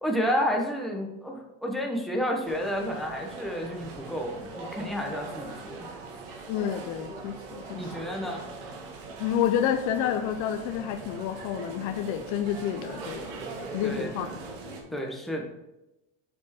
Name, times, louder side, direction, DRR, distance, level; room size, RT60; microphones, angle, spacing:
voice 1, 0.0-5.9 7.7-8.5 13.8-14.1 14.9-15.4, equal, ahead, 0 dB, 1.0 m, -30 dB
sound 1, 2.4-14.8, right 3 dB, 85° right, 2.2 m, -41 dB
voice 2, 6.5-7.9 9.2-13.4 13.7-14.3 14.9-15.0, left 9 dB, 50° left, 7 dB, 0.6 m, -29 dB
7.6 x 4.4 x 4.3 m, 0.91 s
supercardioid pair, 145°, 38 cm